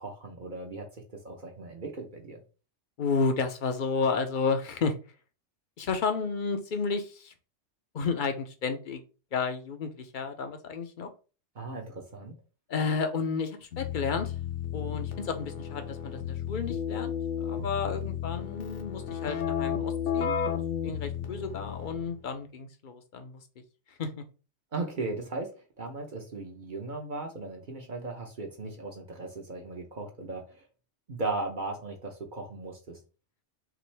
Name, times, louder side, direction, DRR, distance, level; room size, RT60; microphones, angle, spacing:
voice 1, 0.0-2.4 11.6-12.3 24.7-25.5 25.8-30.7 31.1-33.0, right 3 dB, 45° right, 0.9 m, -37 dB
voice 2, 3.0-5.0 5.8-7.3 7.9-9.0 9.3-11.1 12.7-14.3 14.7-17.1 17.4-23.4 23.9-24.2, left 5 dB, 50° left, 0.7 m, -32 dB
Keyboard (musical), 13.7-22.1, left 8 dB, 70° left, 1.2 m, -33 dB
6.0 x 2.6 x 3.3 m
omnidirectional pair, 1.3 m